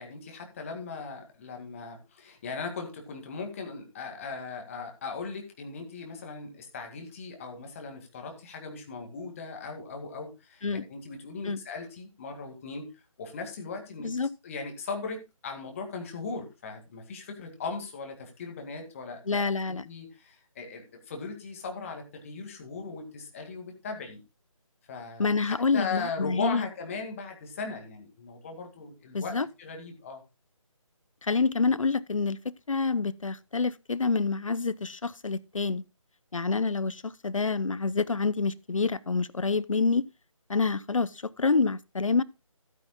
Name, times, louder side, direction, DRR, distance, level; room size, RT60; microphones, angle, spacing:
voice 1, 0.0-12.9 13.2-14.1 14.4-24.2 24.9-30.2, left 4 dB, 25° left, 2.1 m, -38 dB
voice 2, 19.3-19.8 25.2-26.7 29.1-29.5 31.2-32.4 32.7-35.8 36.3-40.0 40.5-42.2, left 4 dB, 65° left, 0.8 m, -27 dB
16.0 x 9.3 x 2.3 m
figure-of-eight pair, 155°, 18 cm